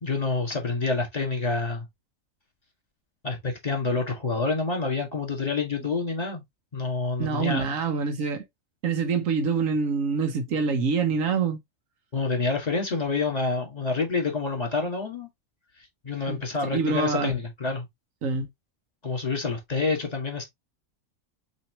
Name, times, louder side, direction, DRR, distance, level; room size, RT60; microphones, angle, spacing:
voice 1, 0.0-1.9 3.2-6.4 6.7-7.7 12.1-15.3 16.0-17.9 19.0-20.4, left 4 dB, 30° left, 1.9 m, -27 dB
voice 2, 7.2-8.4 8.8-11.6 16.3-16.4 16.7-17.4 18.2-18.5, right 5 dB, 85° right, 1.3 m, -25 dB
5.8 x 3.2 x 2.9 m
omnidirectional pair, 1.4 m